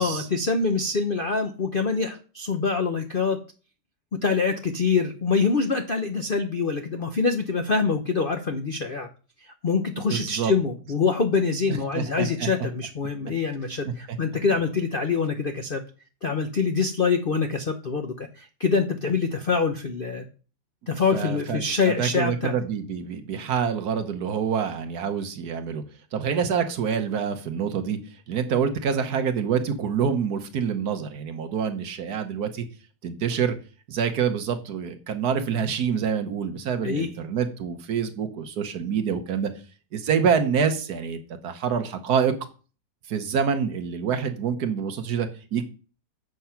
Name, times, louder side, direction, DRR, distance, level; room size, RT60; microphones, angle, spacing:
voice 1, 0.0-3.4 4.1-9.1 9.4-15.8 16.2-20.2 20.9-22.5 36.8-37.1, left 4 dB, 50° left, 6 dB, 0.6 m, -25 dB
voice 2, 10.0-10.5 11.7-12.5 13.8-14.2 21.1-25.8 26.1-28.0 28.3-32.7 33.0-33.6 33.9-39.5 39.9-42.3 43.1-45.6, right 7 dB, 60° right, 7 dB, 1.4 m, -26 dB
7.9 x 5.9 x 5.7 m, 0.37 s
omnidirectional pair, 2.0 m